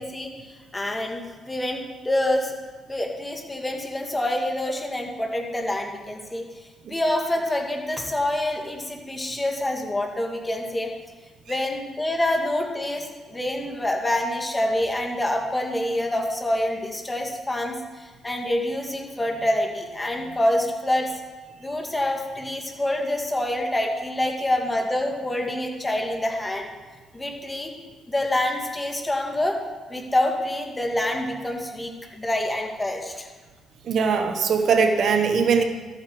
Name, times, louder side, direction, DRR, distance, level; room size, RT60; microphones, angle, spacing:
voice 1, 0.0-2.5 2.9-6.4 6.9-10.9 11.5-21.2 21.6-26.7 27.1-27.7 28.1-29.6 29.9-33.3, left 1 dB, 15° left, 1 dB, 2.0 m, -26 dB
voice 2, 33.8-35.6, right 5 dB, 65° right, 6 dB, 1.0 m, -21 dB
13.5 x 8.2 x 4.7 m, 1.4 s
cardioid pair, 90°, 0 cm